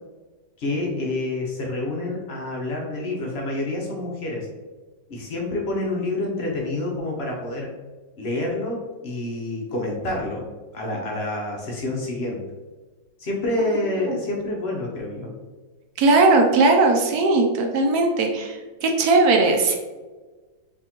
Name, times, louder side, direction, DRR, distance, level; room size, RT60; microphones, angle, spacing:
voice 1, 0.6-4.5 5.1-7.7 8.2-10.5 10.7-12.4 13.2-15.3, left 2 dB, 60° left, -1 dB, 0.6 m, -28 dB
voice 2, 16.0-19.8, right 3 dB, 70° right, 2 dB, 1.0 m, -18 dB
4.3 x 3.5 x 2.9 m, 1.3 s
omnidirectional pair, 2.0 m